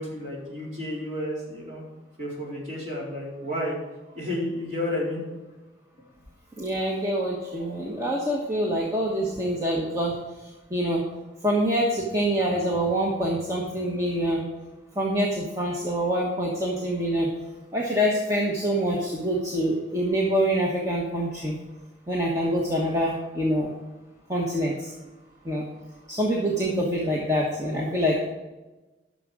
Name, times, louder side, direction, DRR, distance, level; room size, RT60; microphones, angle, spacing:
voice 1, 0.0-1.8 2.2-3.8 4.1-5.2 7.6-7.7, left 1 dB, 40° right, -5 dB, 4.2 m, -31 dB
voice 2, 6.6-10.1 10.7-11.0 11.4-14.5 15.0-17.3 17.7-21.5 22.1-23.7 24.3-24.9 25.4-25.6 26.1-28.3, equal, 15° right, -3 dB, 1.2 m, -25 dB
12.0 x 6.6 x 5.0 m, 1.1 s
head